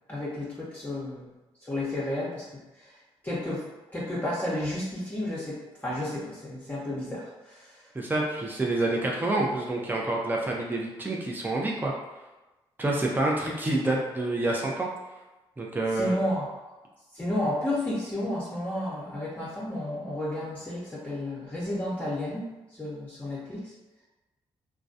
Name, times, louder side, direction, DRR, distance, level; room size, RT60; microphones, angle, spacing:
voice 1, 0.1-1.3 1.6-2.4 2.8-2.9 3.2-3.7 3.9-7.8 15.9-16.5 17.1-22.5 22.7-23.7, left 1 dB, 15° left, -8 dB, 0.8 m, -32 dB
voice 2, 7.9-11.9 12.8-14.9 15.6-16.1, right 2 dB, 15° right, -2 dB, 0.6 m, -27 dB
2.2 x 2.2 x 2.7 m, 1.1 s
hypercardioid pair, 45°, 13 cm